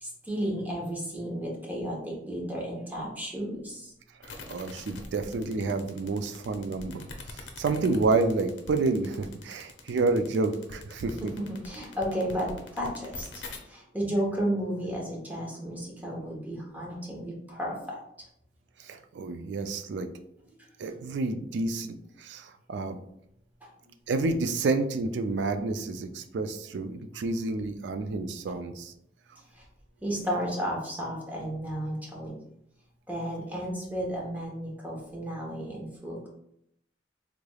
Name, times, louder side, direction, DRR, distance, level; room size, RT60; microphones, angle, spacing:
voice 1, 0.0-3.9 11.5-18.0 30.0-32.3 33.1-36.3, equal, 10° right, -2 dB, 0.8 m, -33 dB
sound 1, 4.2-13.6, left 3 dB, 80° left, 0.6 m, -44 dB
voice 2, 4.2-7.0 7.3-11.3 18.8-20.1 20.8-23.0 24.1-28.9, right 3 dB, 70° right, 8 dB, 0.3 m, -29 dB
3.6 x 3.3 x 2.3 m, 0.75 s
head